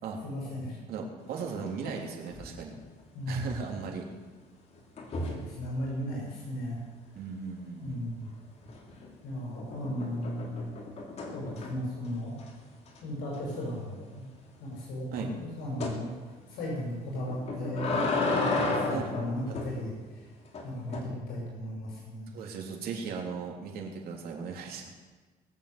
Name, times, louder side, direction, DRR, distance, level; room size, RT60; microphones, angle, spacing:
voice 1, 0.2-0.8 3.1-3.6 5.2-6.8 7.8-8.3 9.2-10.7 11.3-12.4 13.0-14.2 14.6-16.1 16.5-20.3 20.6-22.4, equal, 75° left, -3 dB, 6.1 m, -36 dB
voice 2, 0.9-2.7 3.3-4.1 7.1-8.0 15.1-15.3 18.9-19.1 19.5-19.6 22.3-24.9, right 5 dB, 70° right, 0 dB, 3.2 m, -37 dB
sound 1, 1.4-2.0 2.3-2.6 5.0-5.5 8.6-9.1 9.6-11.9 12.4-12.5 12.9-13.0 13.3-13.4 15.8-16.0 17.3-19.8 20.5-21.0, left 3 dB, 40° left, 2.9 m, -32 dB
21.0 x 7.3 x 8.1 m, 1.3 s
cardioid pair, 135°, 16 cm